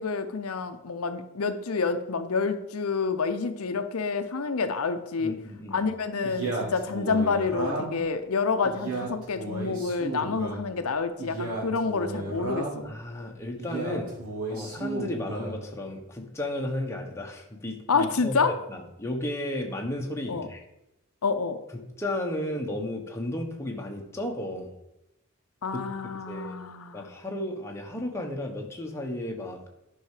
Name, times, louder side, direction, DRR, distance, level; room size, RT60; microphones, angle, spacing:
voice 1, 0.0-5.3 5.7-12.8 17.9-18.5 20.3-20.5 21.2-21.6 25.6-27.1, left 4 dB, 80° left, 9 dB, 0.7 m, -28 dB
voice 2, 5.2-5.8 12.8-14.1 14.5-18.4 18.7-20.6 22.0-24.7 25.7-25.8 26.1-26.5 26.9-29.6, left 1 dB, 15° left, 1 dB, 1.2 m, -33 dB
Male speech man speaking, 6.2-8.1 8.6-10.6 11.2-12.9 13.6-15.6, right 3 dB, 80° right, 3.0 m, -33 dB
10.5 x 5.6 x 4.9 m, 0.89 s
head